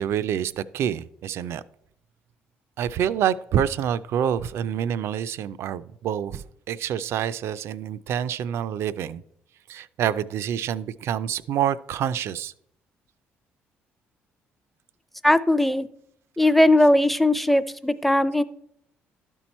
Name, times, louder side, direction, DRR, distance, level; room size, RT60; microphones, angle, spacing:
voice 1, 0.0-1.6 2.8-9.2 9.7-12.5, right 9 dB, 70° right, 16 dB, 0.4 m, -27 dB
voice 2, 15.2-15.9 16.4-18.4, left 1 dB, 5° left, 13 dB, 0.4 m, -19 dB
12.0 x 4.5 x 4.2 m, 0.71 s
cardioid pair, 85°, 5 cm